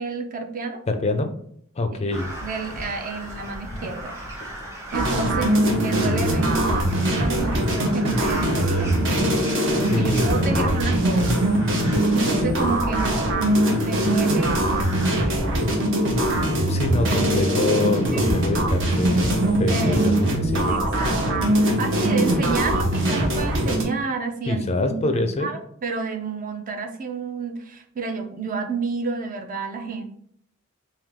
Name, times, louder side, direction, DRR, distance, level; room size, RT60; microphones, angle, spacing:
voice 1, 0.0-0.8 1.9-2.0 2.4-4.2 4.9-9.6 10.0-11.4 12.1-15.8 16.9-17.5 18.1-18.3 19.7-20.1 20.7-30.0, right 4 dB, 40° right, 5 dB, 0.5 m, -30 dB
voice 2, 0.9-1.3 1.8-2.4 9.9-10.8 16.7-19.3 19.6-20.7 24.5-25.5, left 2 dB, 30° left, 7 dB, 0.4 m, -25 dB
Crow, 2.1-15.2, right 1 dB, 15° right, 0.9 m, -37 dB
sound 1, 4.9-23.8, right 1 dB, 60° right, 1.0 m, -21 dB
3.6 x 2.7 x 3.6 m, 0.65 s
head